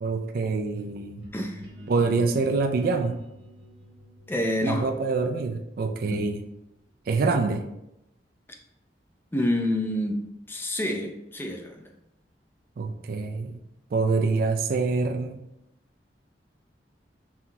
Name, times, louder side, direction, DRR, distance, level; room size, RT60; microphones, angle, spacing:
voice 1, 0.0-1.2 1.9-3.2 4.6-6.4 7.1-7.6 12.8-13.6 13.9-15.4, right 4 dB, 55° right, 5 dB, 0.3 m, -25 dB
sound 1, 1.2-6.8, equal, 80° right, 1.5 m, -47 dB
voice 2, 1.3-1.6 4.3-4.9 6.1-6.2 9.3-10.2 10.5-11.9, left 1 dB, 10° left, 2 dB, 0.4 m, -28 dB
5.5 x 2.8 x 2.3 m, 0.85 s
head